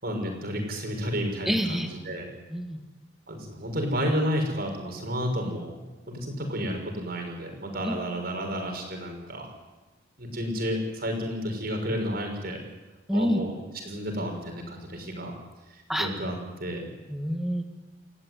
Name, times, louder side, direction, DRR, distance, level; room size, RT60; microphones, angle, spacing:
voice 1, 0.0-2.3 3.3-5.7 6.1-9.5 10.2-12.6 13.1-13.5 13.8-15.3 15.7-16.9, equal, 50° right, 3 dB, 6.5 m, -31 dB
voice 2, 1.5-1.9 2.5-2.8 7.8-8.0 13.1-13.4 15.9-16.1 17.1-17.6, equal, ahead, 5 dB, 2.4 m, -27 dB
29.5 x 15.0 x 9.7 m, 1.1 s
head